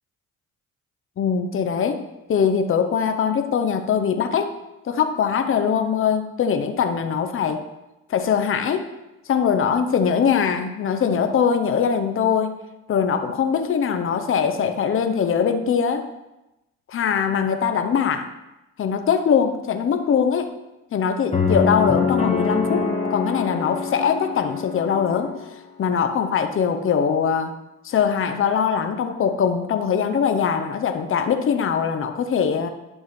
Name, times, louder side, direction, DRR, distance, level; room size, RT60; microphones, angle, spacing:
voice 1, 1.2-2.0 2.3-4.5 4.8-7.6 8.1-8.9 9.3-12.5 12.9-16.0 16.9-18.3 18.8-20.5 20.9-25.3 25.8-27.5 27.8-32.7, left 7 dB, 45° left, 7 dB, 0.7 m, -22 dB
sound 1, 21.3-25.5, left 4 dB, 20° left, 1.4 m, -24 dB
11.5 x 5.4 x 3.2 m, 0.95 s
cardioid pair, 90°, 30 cm